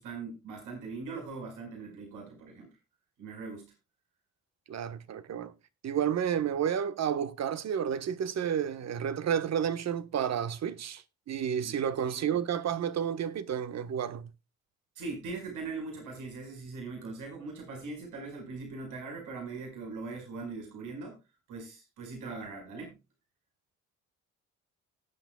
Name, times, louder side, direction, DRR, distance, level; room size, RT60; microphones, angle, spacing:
voice 1, 0.0-2.7 3.2-3.7 11.6-11.8 12.0-12.3 14.9-21.2 21.5-23.0, right 4 dB, 90° right, 5.0 m, -41 dB
voice 2, 4.7-5.5 5.8-14.3, right 8 dB, 60° right, 1.3 m, -31 dB
19.0 x 8.3 x 2.2 m
cardioid pair, 90°, 30 cm